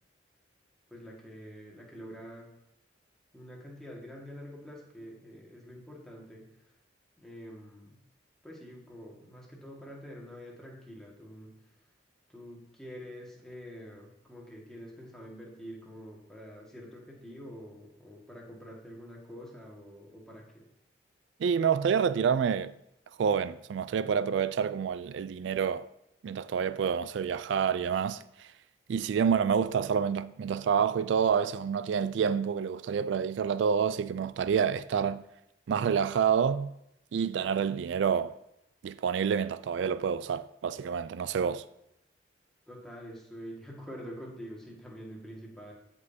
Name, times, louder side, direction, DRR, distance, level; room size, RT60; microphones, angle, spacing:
voice 1, 0.9-2.5 3.3-6.5 7.2-8.0 8.4-11.5 12.3-20.6 42.7-45.7, equal, 5° left, 1.8 m, -46 dB
voice 2, 21.4-22.7 23.2-25.9 26.2-28.2 28.9-35.2 35.7-36.7 37.1-38.3 38.8-41.6, right 7 dB, 80° right, 0.3 m, -28 dB
15.5 x 5.4 x 2.8 m
head